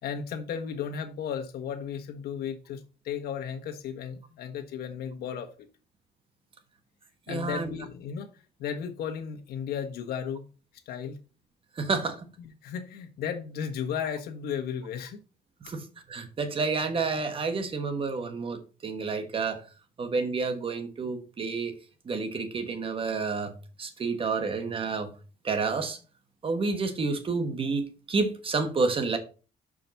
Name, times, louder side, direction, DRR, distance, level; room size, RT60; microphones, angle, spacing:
voice 1, 0.0-5.5 7.3-8.3 8.6-10.4 10.9-11.2 12.4-15.2 15.7-15.8, left 7 dB, 70° left, 1.3 m, -34 dB
voice 2, 7.3-7.7 11.8-12.3 15.6-19.6 20.0-21.7 22.0-25.1 25.4-26.0 26.4-29.2, right 4 dB, 30° right, 1.3 m, -30 dB
5.8 x 5.1 x 4.0 m
cardioid pair, 110°, 17 cm